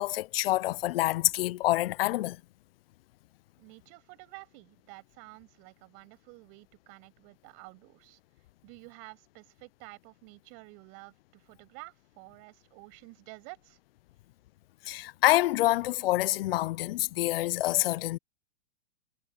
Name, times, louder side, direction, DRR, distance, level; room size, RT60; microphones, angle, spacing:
voice 1, 0.0-2.4 14.9-18.2, left 16 dB, 60° left, 0.5 m, -27 dB
voice 2, 3.6-8.2 8.6-13.8, right 36 dB, 45° right, 7.2 m, -50 dB
hypercardioid pair, 130°, 33 cm